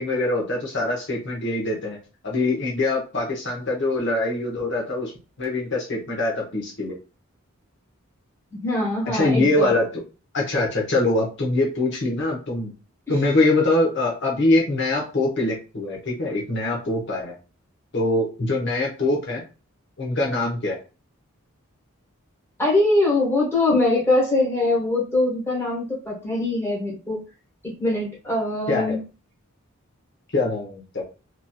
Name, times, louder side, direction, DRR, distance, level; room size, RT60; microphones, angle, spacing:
voice 1, 0.0-2.0 2.2-5.1 5.4-6.9 9.0-10.0 10.3-12.7 13.1-17.3 17.9-19.4 20.0-20.8 28.7-29.0 30.3-31.0, left 2 dB, 55° left, -2 dB, 0.9 m, -23 dB
voice 2, 8.5-9.7 22.6-27.2 27.6-29.0, left 2 dB, 10° left, -5 dB, 1.1 m, -22 dB
2.9 x 2.7 x 2.3 m, 0.33 s
head